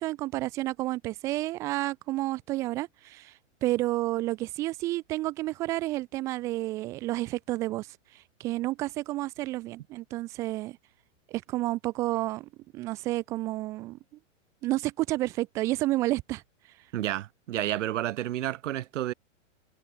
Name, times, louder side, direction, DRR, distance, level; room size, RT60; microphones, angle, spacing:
voice 1, 0.0-3.3 3.6-7.9 8.4-10.8 11.3-14.0 14.6-16.4, right 17 dB, 10° right, 0.4 m, -30 dB
voice 2, 16.9-19.1, right 13 dB, 70° right, 0.8 m, -30 dB
hypercardioid pair, 155°, 38 cm